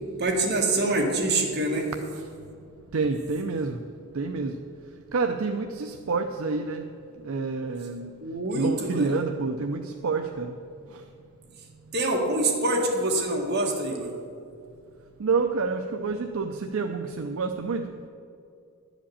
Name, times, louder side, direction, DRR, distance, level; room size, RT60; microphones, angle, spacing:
voice 1, 0.2-1.9 8.2-9.1 11.9-14.1, right 2 dB, 50° right, 0 dB, 1.7 m, -25 dB
voice 2, 2.9-3.8 4.1-4.5 5.1-6.8 7.2-8.1 8.5-10.5 10.9-11.0 15.2-17.9, right 4 dB, 65° right, 5 dB, 0.5 m, -28 dB
11.0 x 5.1 x 8.5 m, 2.4 s
head